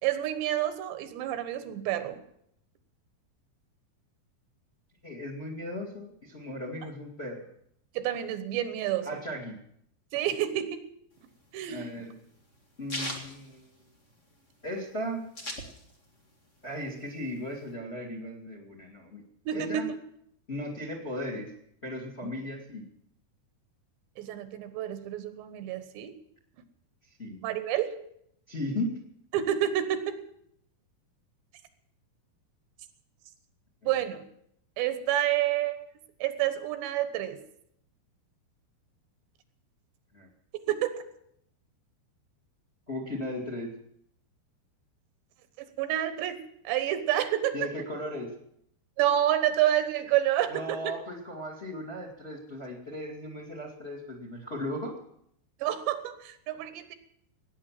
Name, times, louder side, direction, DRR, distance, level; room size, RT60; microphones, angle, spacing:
voice 1, 0.0-2.2 7.9-9.1 10.1-10.9 11.5-11.9 19.5-19.9 24.2-26.1 27.4-27.9 29.3-30.2 33.8-34.3 34.8-35.8 36.2-37.4 40.7-40.9 45.6-47.7 49.0-50.9 55.6-57.0, right 12 dB, 85° right, 10 dB, 3.4 m, -29 dB
voice 2, 5.0-7.4 9.0-9.5 11.7-12.1 12.8-13.6 14.6-15.2 16.6-19.2 19.5-19.9 20.5-21.5 21.8-22.9 27.2-27.4 28.5-28.9 33.8-33.9 40.1-40.3 42.9-43.7 47.5-48.3 50.5-54.9, left 1 dB, 20° left, 1 dB, 1.7 m, -36 dB
sound 1, 11.2-14.3 14.6-14.7 14.9-16.2 16.6-17.7, left 1 dB, 75° left, 0.7 m, -39 dB
18.0 x 9.6 x 7.4 m, 0.72 s
omnidirectional pair, 5.0 m